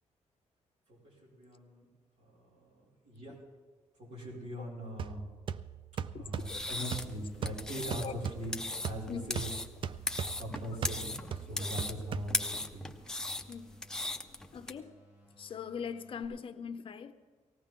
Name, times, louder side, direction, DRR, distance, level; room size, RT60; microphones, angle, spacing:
voice 1, 0.9-1.9 2.2-3.4 4.0-5.2 6.1-9.5 10.4-12.9, equal, 70° right, 5.4 m, -42 dB
sound 1, 5.0-12.7, right 7 dB, 45° right, 0.4 m, -40 dB
voice 2, 6.1-6.6 8.0-8.1 8.7-8.8 9.1-9.4 11.6-11.7 13.5-13.7 14.5-15.0 15.4-17.1, left 6 dB, 45° left, 0.6 m, -41 dB
sound 2, 6.2-16.2, right 2 dB, 15° right, 4.1 m, -61 dB
sound 3, 6.3-14.7, left 2 dB, 5° left, 0.6 m, -38 dB
18.5 x 15.5 x 3.7 m
wide cardioid pair, 165°, 12 cm